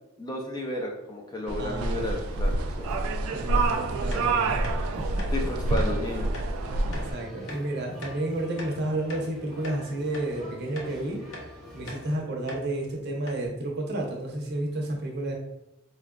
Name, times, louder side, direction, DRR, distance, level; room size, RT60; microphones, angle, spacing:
voice 1, 0.2-3.0 3.5-3.6 5.3-6.3, left 1 dB, 20° left, 1 dB, 0.4 m, -33 dB
sound 1, 1.5-7.1, right 2 dB, 75° right, 0.3 m, -27 dB
voice 2, 1.6-2.2 3.3-4.8 5.1-5.2 6.9-11.2 11.7-15.3, right 1 dB, 50° right, 0 dB, 0.7 m, -31 dB
sound 2, 2.0-12.1, equal, ahead, 0.9 m, -46 dB
sound 3, 4.1-4.2 4.6-4.8 5.2-5.3 5.8-5.9 6.3-6.5 6.9-7.1 7.5-7.6 8.0-8.2 8.6-9.3 9.6-9.8 10.1-10.3 10.8-10.9 11.3-11.5 11.9-12.0 12.5-12.6 12.9-13.0 13.3-13.5, left 1 dB, 65° left, 0.7 m, -41 dB
4.2 x 2.3 x 2.2 m, 0.89 s
head